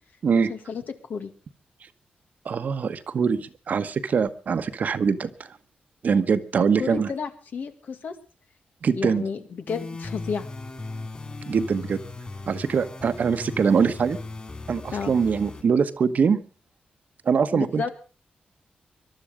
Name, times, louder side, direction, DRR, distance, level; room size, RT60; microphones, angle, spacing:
voice 1, 0.3-1.3 6.8-8.2 8.9-10.5 14.9-15.1 17.5-17.9, left 5 dB, 70° left, 8 dB, 2.0 m, -32 dB
voice 2, 2.4-5.3 6.0-7.1 8.8-9.2 11.5-12.0 12.5-14.2 14.7-16.4 17.2-17.9, right 6 dB, 60° right, 11 dB, 1.1 m, -23 dB
sound 1, 9.7-15.6, left 3 dB, 30° left, 4.4 m, -38 dB
22.0 x 12.0 x 5.0 m, 0.36 s
wide cardioid pair, 125°, 3 cm